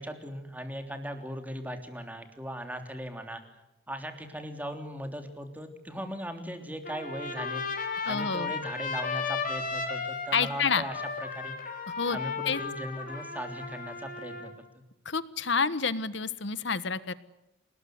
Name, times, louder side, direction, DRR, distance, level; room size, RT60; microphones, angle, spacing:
voice 1, 0.0-3.4 3.9-7.6 8.0-11.6 12.1-14.5, equal, 10° right, 6 dB, 3.2 m, -38 dB
Trumpet, 6.8-14.5, left 4 dB, 45° left, 4.9 m, -35 dB
voice 2, 8.1-8.5 10.3-10.8 11.9-12.2 12.5-12.6 15.0-17.1, left 5 dB, 65° left, 15 dB, 1.4 m, -29 dB
28.0 x 20.0 x 9.5 m, 0.91 s
head